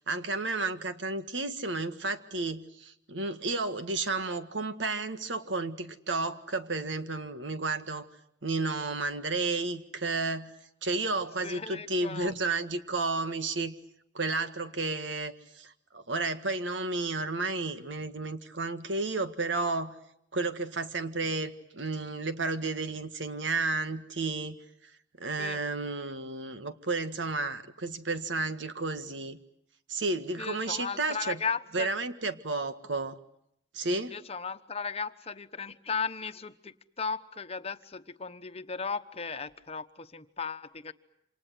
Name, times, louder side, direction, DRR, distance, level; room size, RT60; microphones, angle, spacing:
voice 1, 0.0-8.1 8.4-10.5 10.8-13.7 14.1-20.0 20.3-24.6 25.2-29.4 29.9-31.4 31.7-33.2 33.7-34.2, right 3 dB, 90° right, 10 dB, 1.7 m, -32 dB
voice 2, 11.4-12.3 25.4-25.6 30.4-31.9 34.1-40.9, left 5 dB, 35° left, 10 dB, 1.1 m, -36 dB
28.0 x 26.5 x 7.8 m, 0.74 s
head